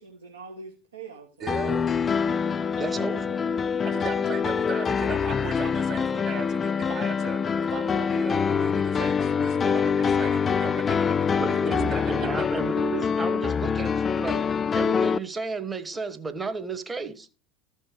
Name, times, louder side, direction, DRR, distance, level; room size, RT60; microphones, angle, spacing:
voice 1, 0.0-2.0 4.1-4.4, right 4 dB, 80° right, 1.6 m, -44 dB
voice 2, 1.4-1.9 3.8-7.4 7.7-11.0 11.5-12.3, right 7 dB, 40° right, 0.9 m, -38 dB
sound 1, 1.5-15.2, left 6 dB, 25° left, 0.4 m, -25 dB
voice 3, 2.8-3.4 11.2-14.4 14.7-17.3, right 4 dB, 15° right, 1.1 m, -33 dB
13.5 x 5.6 x 4.8 m
figure-of-eight pair, 75°, 0 cm